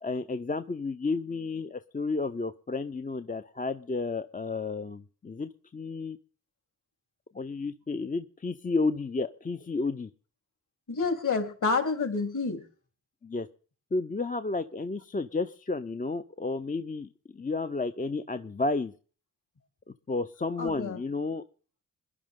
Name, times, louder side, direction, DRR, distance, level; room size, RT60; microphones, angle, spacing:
voice 1, 0.0-6.2 7.3-10.1 13.2-13.5 13.9-18.9 19.9-21.4, left 3 dB, 20° left, 10 dB, 0.8 m, -32 dB
voice 2, 10.9-12.6 20.6-21.0, left 4 dB, 45° left, 4 dB, 3.8 m, -28 dB
21.0 x 11.0 x 3.8 m, 0.41 s
supercardioid pair, 45°, 41 cm